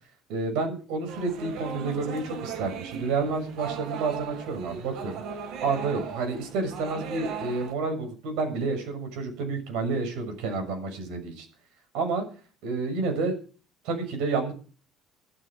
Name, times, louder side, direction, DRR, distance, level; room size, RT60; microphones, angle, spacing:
voice 1, 0.3-5.2 5.6-11.5 11.9-12.2 12.6-13.4 13.8-14.5, right 4 dB, 75° right, 5 dB, 6.7 m, -29 dB
sound 1, 1.1-7.7, right 7 dB, 55° right, 2.0 m, -38 dB
14.0 x 13.0 x 6.3 m, 0.39 s
cardioid pair, 175°, 0 cm